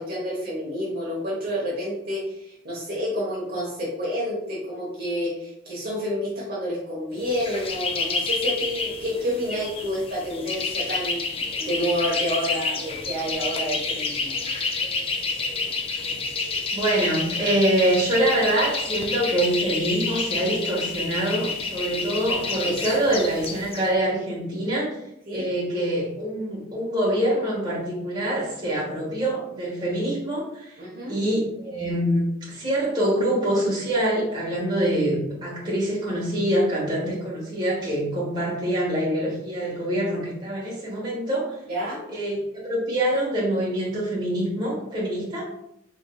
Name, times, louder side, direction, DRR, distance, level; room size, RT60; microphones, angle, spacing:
voice 1, 0.0-11.2 11.6-14.4 22.6-22.9 25.3-25.5 30.8-31.2 41.7-42.0, equal, 55° right, -5 dB, 1.0 m, -29 dB
sound 1, 7.2-23.9, left 4 dB, 30° left, 0.4 m, -29 dB
voice 2, 16.7-25.0 25.3-30.7 31.1-41.5 42.1-45.5, right 1 dB, 25° right, -6 dB, 1.5 m, -25 dB
3.6 x 3.6 x 2.3 m, 0.79 s
head